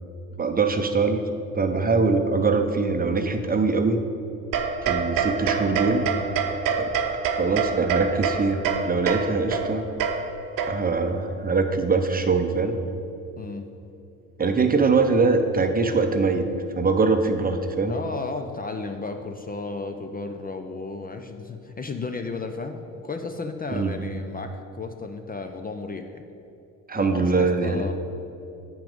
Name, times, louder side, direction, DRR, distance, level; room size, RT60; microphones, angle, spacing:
voice 1, 0.4-1.2 1.5-4.0 4.8-6.0 6.8-6.9 7.4-9.9 10.7-12.8 14.4-16.5 16.7-17.9 23.7-24.0 26.9-27.9, right 4 dB, 20° right, 7 dB, 0.7 m, -22 dB
sound 1, 4.5-11.1, right 5 dB, 50° right, 0.9 m, -27 dB
voice 2, 13.4-13.7 17.9-26.2 26.9-27.9, left 3 dB, 20° left, 6 dB, 0.6 m, -34 dB
8.8 x 5.9 x 5.1 m, 2.8 s
hypercardioid pair, 60°, 41 cm